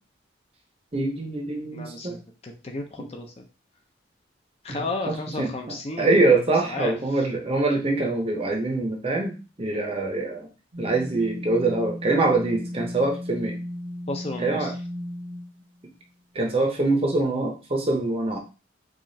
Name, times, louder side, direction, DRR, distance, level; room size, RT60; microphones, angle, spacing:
voice 1, 0.9-2.2 4.7-5.5 6.0-10.5 10.8-13.6 14.4-14.7 16.3-18.4, right 2 dB, 30° right, 1 dB, 0.7 m, -24 dB
voice 2, 1.7-2.2 2.4-3.3 4.6-6.2 6.7-6.9 14.1-14.7, left 2 dB, 30° left, 3 dB, 0.5 m, -33 dB
sound 1, 10.7-16.0, left 1 dB, 60° right, 0.9 m, -35 dB
4.8 x 2.4 x 2.7 m, 0.33 s
head